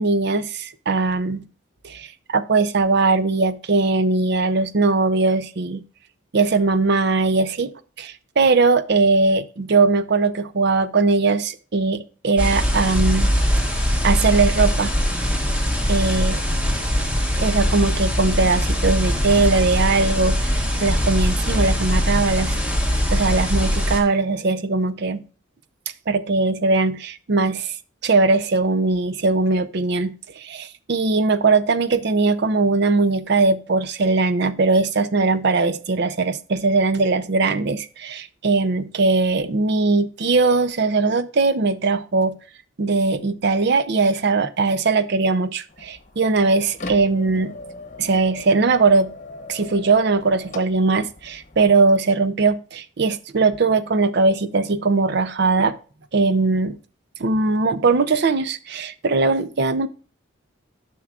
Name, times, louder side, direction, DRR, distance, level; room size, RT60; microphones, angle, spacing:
voice 1, 0.0-1.4 1.8-5.8 6.3-7.7 8.0-13.3 14.0-14.9 15.9-16.4 17.4-20.5 20.8-22.6 23.1-25.2 26.1-27.8 28.0-42.4 42.8-47.5 48.0-49.1 49.5-55.7 56.1-56.8 57.2-59.9, right 3 dB, 55° right, 0.5 m, -20 dB
sound 1, 12.4-24.0, equal, 5° right, 1.1 m, -21 dB
sound 2, 45.7-51.7, left 2 dB, 40° left, 1.0 m, -39 dB
10.5 x 6.0 x 2.4 m
head